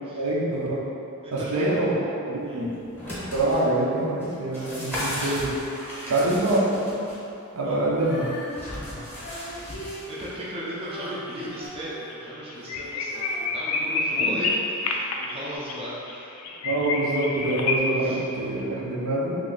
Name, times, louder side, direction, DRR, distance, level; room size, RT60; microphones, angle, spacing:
voice 1, 0.1-0.8 1.3-1.9 2.3-2.7 3.3-5.5 6.1-7.1 7.5-8.3 14.1-14.4 16.6-19.4, right 1 dB, 70° right, -5 dB, 0.6 m, -25 dB
voice 2, 1.2-1.8 2.4-2.6 5.9-6.4 7.6-7.8 8.9-9.1 10.1-14.5 14.8-16.3 18.0-18.2, equal, 25° right, -8 dB, 0.5 m, -37 dB
sound 1, 2.7-3.6 4.2-7.2 8.5-10.3 11.6-11.7, equal, 10° left, 0.9 m, -35 dB
Female singing, 7.9-14.9 15.5-15.6, equal, 45° left, 0.6 m, -41 dB
sound 2, 11.0-11.3 11.6-11.7 12.1-12.2 12.5-17.8, left 3 dB, 85° left, 0.4 m, -28 dB
3.1 x 2.5 x 3.8 m, 2.8 s
head